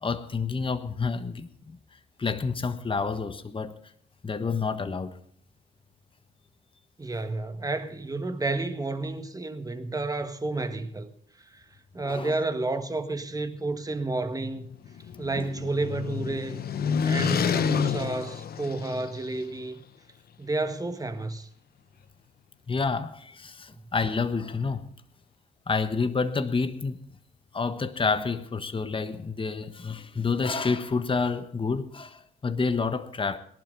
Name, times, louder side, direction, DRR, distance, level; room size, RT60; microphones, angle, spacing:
voice 1, 0.0-1.8 2.2-3.7 4.2-5.2 12.0-12.3 15.4-15.5 22.7-24.9 25.7-27.0 27.5-33.4, left 4 dB, 25° left, 1.3 m, -29 dB
voice 2, 7.0-11.1 11.4-11.6 11.9-14.7 15.2-16.6 17.0-19.8 20.4-21.5, right 2 dB, 20° right, 1.7 m, -31 dB
sound 1, 14.6-19.4, left 7 dB, 55° left, 1.2 m, -29 dB
18.5 x 11.5 x 4.0 m
supercardioid pair, 65°, 19 cm